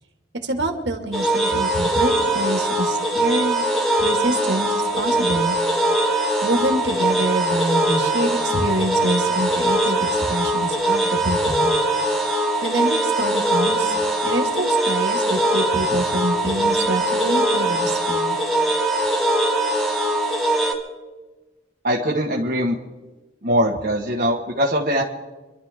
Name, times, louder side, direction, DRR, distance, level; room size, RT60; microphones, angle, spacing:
voice 1, 0.3-3.6 4.0-4.7 5.0-5.5 6.4-11.7 12.6-18.4, right 1 dB, 70° right, 4 dB, 2.3 m, -26 dB
sound 1, 1.1-20.7, right 1 dB, ahead, 1.9 m, -21 dB
voice 2, 21.8-22.8 23.4-25.0, equal, 50° right, -3 dB, 1.5 m, -21 dB
27.0 x 12.0 x 3.7 m, 1.2 s
head